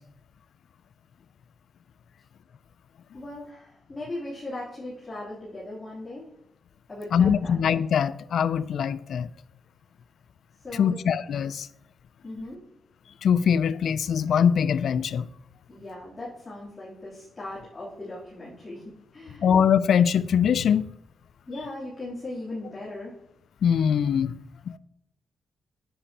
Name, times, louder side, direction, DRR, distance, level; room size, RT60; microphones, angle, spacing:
voice 1, 3.1-6.3 6.9-7.5 10.6-11.0 12.2-12.6 15.7-19.5 21.5-23.1, left 1 dB, 25° left, 3.4 m, -38 dB
voice 2, 7.1-9.3 10.7-11.7 13.2-15.3 19.4-20.9 23.6-24.3 24.7-24.8, left 7 dB, 70° left, 0.4 m, -22 dB
10.0 x 8.4 x 3.0 m
cardioid pair, 100°, 0 cm